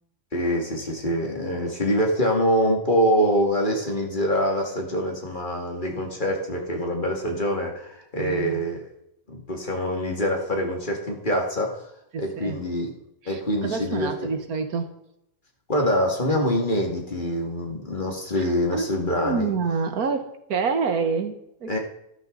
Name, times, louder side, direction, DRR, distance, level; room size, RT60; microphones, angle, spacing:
voice 1, 0.3-8.8 9.3-11.7 12.2-12.9 13.3-14.1 15.7-19.5 21.7-21.8, equal, 35° left, 1 dB, 2.5 m, -25 dB
voice 2, 8.2-8.6 12.1-12.6 13.2-14.9 18.4-21.7, right 5 dB, 85° right, 7 dB, 1.8 m, -28 dB
14.0 x 12.5 x 4.0 m, 0.80 s
omnidirectional pair, 1.5 m